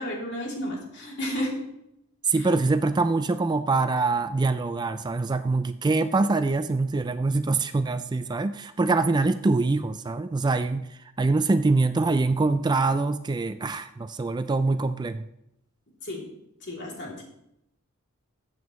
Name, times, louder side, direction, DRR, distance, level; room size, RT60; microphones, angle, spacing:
voice 1, 0.0-1.7 2.4-2.5 16.0-16.3 16.6-17.2, equal, 55° left, -2 dB, 3.0 m, -32 dB
voice 2, 2.3-10.9 11.2-15.3, right 3 dB, 20° right, 11 dB, 0.3 m, -24 dB
14.0 x 8.0 x 3.1 m, 0.82 s
head